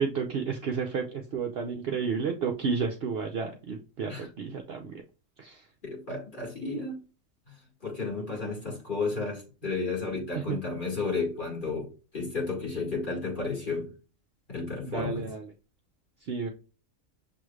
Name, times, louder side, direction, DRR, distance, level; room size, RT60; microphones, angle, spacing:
voice 1, 0.0-5.0 5.4-5.7 8.2-8.5 10.3-10.6 14.9-15.5 16.2-16.5, right 5 dB, 60° right, 0.7 m, -32 dB
voice 2, 5.8-7.0 7.8-13.9 14.5-15.2, left 3 dB, 40° left, 2.0 m, -32 dB
6.9 x 3.2 x 2.3 m
omnidirectional pair, 1.4 m